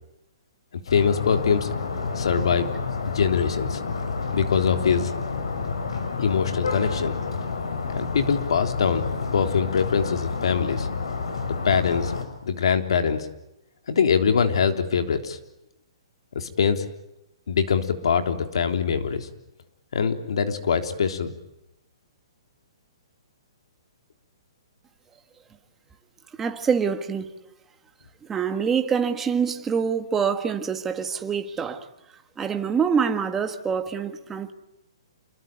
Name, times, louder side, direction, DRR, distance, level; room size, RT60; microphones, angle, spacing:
sound 1, 0.9-12.2, left 4 dB, 90° left, 6.7 m, -29 dB
voice 1, 0.9-1.7 2.2-2.7 3.1-3.8 4.3-5.2 6.2-7.2 7.9-9.0 9.3-10.9 11.6-12.1 12.4-13.3 13.9-15.4 16.4-16.9 17.5-19.3 19.9-21.3, left 6 dB, 70° left, 3.5 m, -23 dB
voice 2, 26.4-27.3 28.3-31.9 32.4-34.5, right 6 dB, 10° right, 1.6 m, -25 dB
28.5 x 22.5 x 9.3 m
hypercardioid pair, 170°, 3 cm